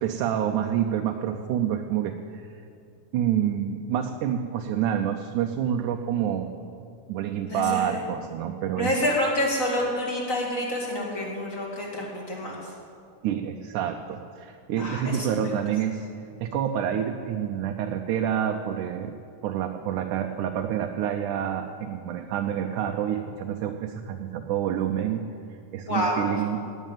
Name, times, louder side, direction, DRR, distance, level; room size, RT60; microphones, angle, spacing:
voice 1, 0.0-2.5 3.1-6.5 7.1-9.0 13.2-16.1 16.4-19.2 19.4-25.2 25.7-26.7, right 9 dB, 80° right, 4 dB, 2.1 m, -28 dB
voice 2, 7.5-8.0 8.8-12.7 14.8-15.6 25.9-26.2, left 1 dB, 25° left, -3 dB, 2.5 m, -28 dB
18.0 x 6.4 x 9.1 m, 2.4 s
omnidirectional pair, 3.6 m